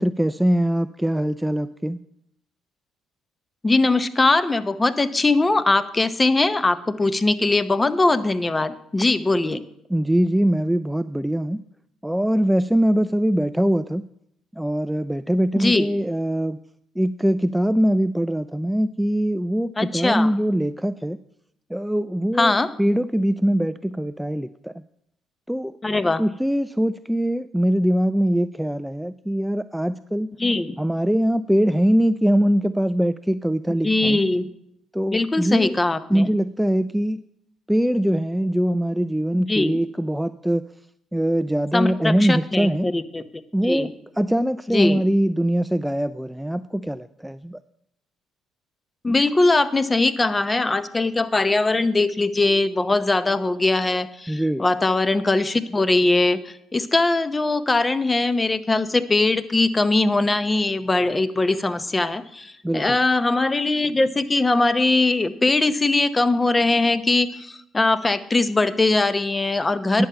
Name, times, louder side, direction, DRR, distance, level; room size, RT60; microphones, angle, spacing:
voice 1, 0.0-2.0 9.9-11.6 12.0-14.1 14.5-16.6 17.0-21.2 21.7-24.8 25.5-25.7 26.0-30.3 30.8-34.2 34.9-35.8 36.1-37.2 37.7-40.6 41.1-42.9 43.5-43.9 44.2-47.6 54.3-54.6 62.6-63.0 70.0-70.1, equal, 5° right, 13 dB, 0.3 m, -22 dB
voice 2, 3.6-9.6 15.6-15.9 19.8-20.3 22.4-22.7 25.8-26.2 30.4-30.7 33.8-34.5 35.1-36.3 39.5-39.8 41.7-43.2 43.6-43.9 44.7-45.0 49.0-70.1, left 2 dB, 25° left, 13 dB, 0.8 m, -21 dB
10.0 x 6.9 x 5.6 m, 0.77 s
hypercardioid pair, 60°, 0 cm